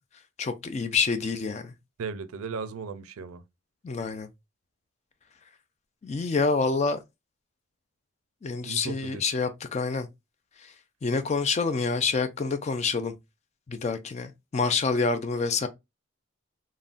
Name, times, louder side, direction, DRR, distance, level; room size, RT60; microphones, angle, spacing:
voice 1, 0.4-1.7 3.8-4.3 6.0-7.0 8.4-10.1 11.0-13.1 13.7-15.7, left 4 dB, 30° left, 0.3 m, -27 dB
voice 2, 2.0-3.4 8.6-9.2, right 5 dB, 85° right, 0.4 m, -36 dB
3.6 x 2.1 x 2.4 m
head